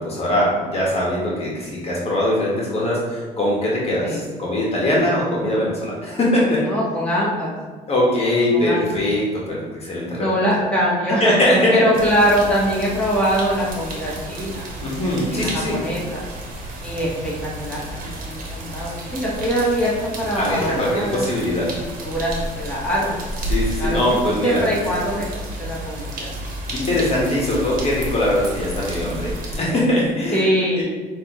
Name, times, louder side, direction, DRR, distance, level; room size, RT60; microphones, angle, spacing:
voice 1, 0.0-6.6 7.9-10.3 11.2-11.8 14.8-15.8 20.4-21.7 23.5-24.6 26.7-30.4 30.8-30.9, left 1 dB, 40° left, -5 dB, 1.4 m, -21 dB
voice 2, 6.6-7.5 8.5-9.0 10.2-11.3 11.7-14.7 15.3-16.2 16.8-21.3 21.8-22.3 22.6-23.1 23.8-24.0 24.4-26.3 30.3-30.8, equal, 5° left, -7 dB, 1.5 m, -23 dB
sound 1, 11.9-29.6, right 1 dB, 60° right, 1.2 m, -31 dB
5.9 x 2.9 x 3.0 m, 1.4 s
cardioid pair, 90°, 16 cm